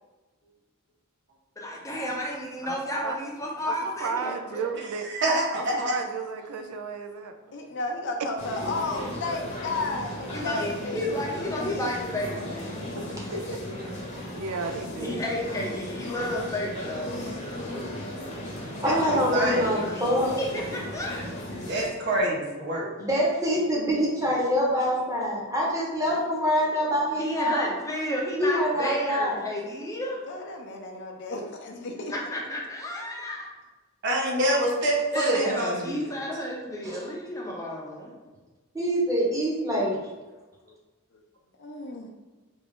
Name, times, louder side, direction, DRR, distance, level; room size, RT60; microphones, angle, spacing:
voice 1, 1.6-4.6 10.3-12.7 15.0-17.4 19.7-20.1 20.4-21.2 27.2-30.2 32.1-33.5 35.1-38.1, left 1 dB, 15° left, -2 dB, 0.6 m, -32 dB
voice 2, 2.6-3.2 3.7-3.8 4.0-5.1 5.5-7.4 13.0-13.6 14.3-15.2, right 5 dB, 85° right, 6 dB, 0.4 m, -34 dB
voice 3, 4.7-6.0 18.8-19.8 21.7-22.9 34.0-36.0, right 1 dB, 55° right, -1 dB, 0.7 m, -26 dB
voice 4, 7.5-11.1 13.5-13.6 17.5-18.1 30.3-32.1 40.3-40.7 41.6-42.1, left 2 dB, 55° left, 2 dB, 0.5 m, -33 dB
sound 1, 8.4-21.9, left 1 dB, 35° left, 0.9 m, -36 dB
voice 5, 18.8-20.4 23.0-27.7 28.4-29.4 36.8-37.0 38.7-40.0, equal, 15° right, -4 dB, 0.9 m, -25 dB
3.4 x 2.4 x 3.5 m, 1.2 s
head